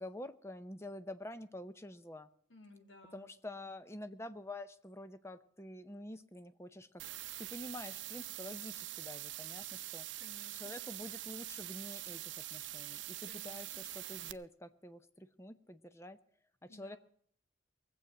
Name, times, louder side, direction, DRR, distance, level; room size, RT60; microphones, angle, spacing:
voice 1, 0.0-2.3 3.1-7.0 7.4-10.1 10.5-16.2 16.6-17.0, left 1 dB, 15° left, 12 dB, 0.6 m, -48 dB
voice 2, 2.5-3.3 10.2-10.8 13.3-13.8 16.7-17.0, left 2 dB, 85° left, 3 dB, 2.9 m, -58 dB
sound 1, 7.0-14.3, right 15 dB, 70° right, 0.7 m, -44 dB
20.5 x 8.0 x 7.4 m, 0.63 s
head